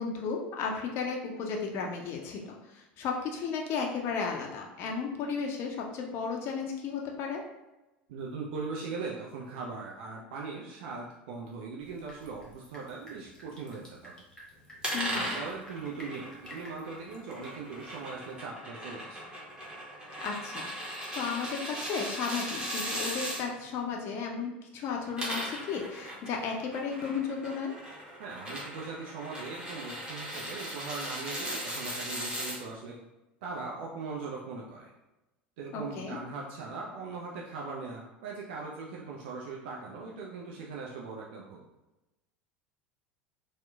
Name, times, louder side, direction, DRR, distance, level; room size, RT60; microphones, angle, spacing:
voice 1, 0.0-7.4 14.9-15.4 20.2-27.7 35.7-36.2, left 5 dB, 45° left, 1 dB, 0.4 m, -34 dB
voice 2, 8.1-14.1 14.9-19.2 28.2-32.9 33.4-34.9 35.6-41.6, right 4 dB, 65° right, -3 dB, 0.4 m, -40 dB
Drip, 11.8-18.4, left 1 dB, 10° left, 0.8 m, -53 dB
sound 1, 14.8-23.4 24.9-32.6, equal, 15° right, 0.8 m, -38 dB
2.8 x 2.0 x 2.3 m, 1.0 s
hypercardioid pair, 75°, 6 cm